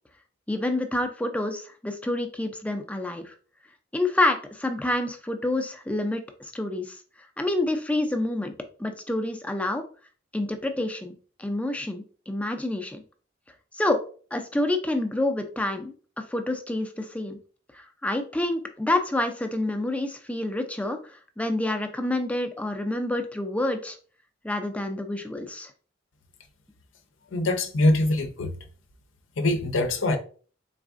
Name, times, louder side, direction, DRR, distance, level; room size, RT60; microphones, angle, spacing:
voice 1, 0.5-3.3 3.9-7.0 7.4-8.5 8.8-9.8 10.3-11.1 11.4-13.0 13.7-14.0 14.3-17.4 17.7-24.0 24.4-25.7, left 1 dB, 5° left, 0.4 m, -28 dB
voice 2, 27.3-28.5 29.4-30.2, left 1 dB, 70° left, 0.6 m, -23 dB
4.0 x 3.5 x 2.5 m
head